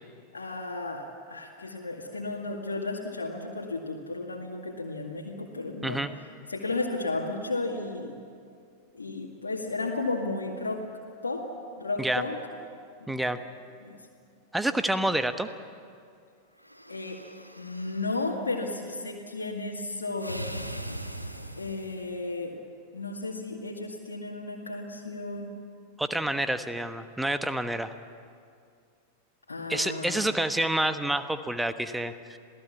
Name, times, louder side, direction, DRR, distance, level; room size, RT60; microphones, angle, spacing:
voice 1, 0.3-6.0 6.5-8.1 8.9-10.8 11.2-11.5 11.8-12.4 13.0-13.4 13.8-14.1 16.9-17.2 17.6-20.5 21.6-22.5 22.9-25.5 29.5-30.3, left 3 dB, 75° left, -2 dB, 2.2 m, -33 dB
voice 2, 13.1-13.4 14.5-15.5 26.0-27.9 29.7-32.4, right 1 dB, 5° right, 10 dB, 1.2 m, -28 dB
sound 1, 16.6-18.3 20.2-22.1, right 1 dB, 90° left, 1.5 m, -40 dB
27.0 x 17.5 x 8.4 m, 2.3 s
figure-of-eight pair, 90°, 0 cm